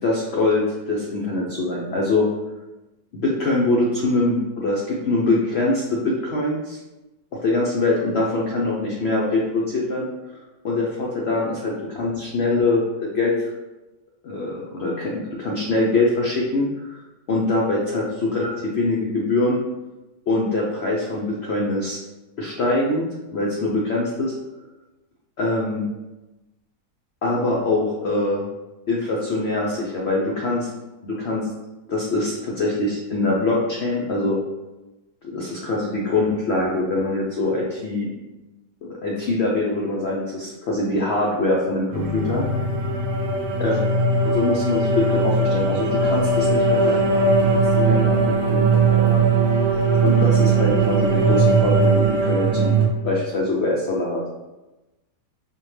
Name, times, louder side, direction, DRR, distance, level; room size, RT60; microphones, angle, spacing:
voice 1, 0.0-2.3 3.1-6.8 7.4-10.4 10.6-13.5 14.2-17.0 17.3-19.6 20.3-22.0 22.4-23.1 23.3-24.3 25.4-25.9 27.2-28.5 28.9-30.7 31.0-31.5 31.9-34.4 35.3-38.1 38.8-42.4 43.6-43.8 44.2-49.2 50.0-52.8 53.0-54.3, left 2 dB, 80° left, -3 dB, 0.5 m, -23 dB
sound 1, 41.9-52.9, right 3 dB, 80° right, 1.2 m, -19 dB
5.4 x 2.2 x 3.1 m, 1.1 s
omnidirectional pair, 1.8 m